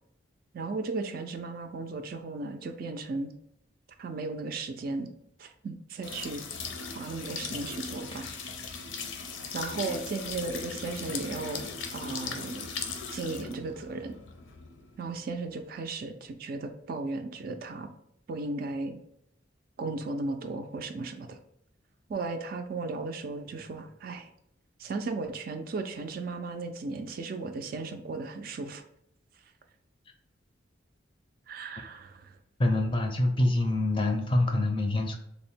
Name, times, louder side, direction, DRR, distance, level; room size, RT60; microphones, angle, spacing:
voice 1, 0.5-3.3 4.0-5.1 5.4-6.4 6.9-8.3 9.5-12.7 13.1-14.1 15.0-17.9 18.3-19.0 19.8-21.4 22.1-24.3 24.8-28.8 31.5-32.3, right 3 dB, 50° right, 6 dB, 0.3 m, -35 dB
sound 1, 6.0-15.7, left 5 dB, 80° left, 0.5 m, -38 dB
voice 2, 32.6-35.2, left 1 dB, 25° left, 4 dB, 0.4 m, -25 dB
3.4 x 2.1 x 4.3 m, 0.76 s
head